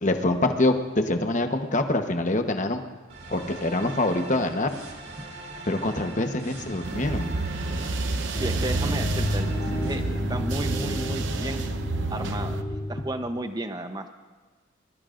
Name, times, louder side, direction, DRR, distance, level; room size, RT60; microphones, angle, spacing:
voice 1, 0.0-2.8 3.3-4.8 5.7-7.3, left 2 dB, 40° left, 6 dB, 1.0 m, -25 dB
sound 1, 3.1-9.9, right 2 dB, 55° right, 2.9 m, -41 dB
sound 2, 6.8-12.6, right 3 dB, 75° right, 0.9 m, -29 dB
sound 3, 8.3-13.3, left 1 dB, 20° left, 4.9 m, -31 dB
voice 2, 8.4-9.5 9.8-10.0 10.3-11.6 12.1-14.0, right 1 dB, 20° right, 7 dB, 0.8 m, -33 dB
24.5 x 21.5 x 2.6 m, 1.4 s
head